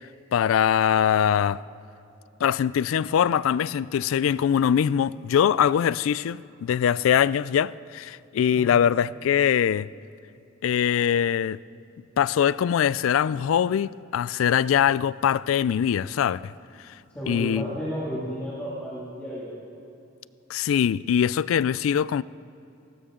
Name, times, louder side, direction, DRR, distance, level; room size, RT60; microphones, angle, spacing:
voice 1, 0.3-1.6 2.4-9.9 10.6-11.6 12.2-16.5 17.3-17.7 20.5-22.2, left 8 dB, 80° left, 0.3 m, -22 dB
voice 2, 17.1-19.5, equal, 10° left, 2.4 m, -32 dB
18.0 x 16.0 x 3.7 m
head